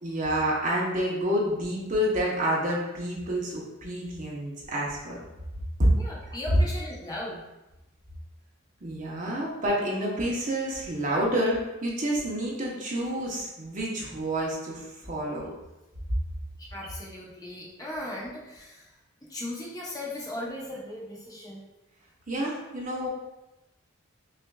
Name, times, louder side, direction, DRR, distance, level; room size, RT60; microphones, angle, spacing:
voice 1, 0.0-5.2 5.8-5.9 8.8-15.5 22.3-23.1, equal, 40° right, -4 dB, 0.9 m, -28 dB
voice 2, 6.0-7.5 16.6-18.9 19.2-21.6, left 1 dB, 15° left, -4 dB, 0.7 m, -37 dB
5.6 x 2.5 x 2.3 m, 0.98 s
head